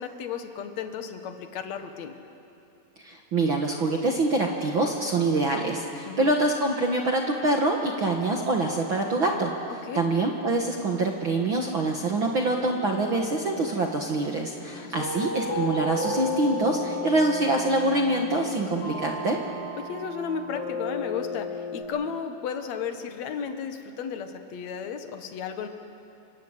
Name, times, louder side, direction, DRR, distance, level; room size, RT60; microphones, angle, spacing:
voice 1, 0.0-2.2 6.0-6.3 9.8-10.1 14.6-15.3 19.8-25.7, left 7 dB, 55° left, 7 dB, 2.2 m, -34 dB
voice 2, 3.0-9.5 9.9-19.4, right 2 dB, 55° right, 1 dB, 1.3 m, -25 dB
sound 1, 12.4-21.8, left 2 dB, 90° left, 10.0 m, -34 dB
28.5 x 25.5 x 8.3 m, 2.8 s
omnidirectional pair, 4.7 m